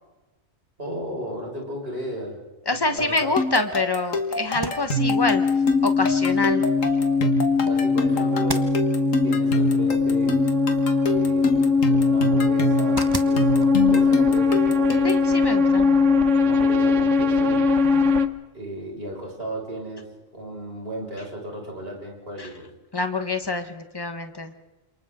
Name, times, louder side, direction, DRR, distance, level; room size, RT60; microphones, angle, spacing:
voice 1, 0.8-2.4 2.9-3.3 7.6-8.7 9.2-10.4 11.1-15.1 16.4-17.6 18.5-20.1 20.3-22.7, right 1 dB, 45° right, -1 dB, 6.3 m, -35 dB
voice 2, 2.6-5.4 5.8-6.6 15.0-15.9 22.4-22.5 22.9-24.5, left 3 dB, 20° left, 7 dB, 1.4 m, -26 dB
sound 1, 3.0-15.3, equal, 70° left, 2.1 m, -28 dB
sound 2, 4.5-16.1, right 2 dB, 20° right, 0.9 m, -41 dB
sound 3, 5.0-18.3, left 4 dB, 65° right, 1.3 m, -20 dB
28.5 x 27.0 x 3.8 m, 1.1 s
omnidirectional pair, 1.4 m